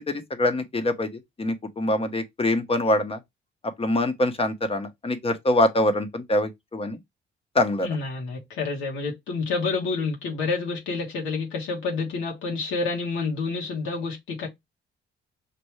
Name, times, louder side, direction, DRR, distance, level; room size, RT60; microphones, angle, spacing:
voice 1, 0.1-1.1 1.4-3.2 3.8-7.0 7.5-7.9, left 1 dB, 30° left, 1.0 m, -24 dB
voice 2, 7.8-14.5, left 4 dB, 90° left, 1.5 m, -28 dB
5.4 x 2.6 x 3.1 m
cardioid pair, 90°, 20 cm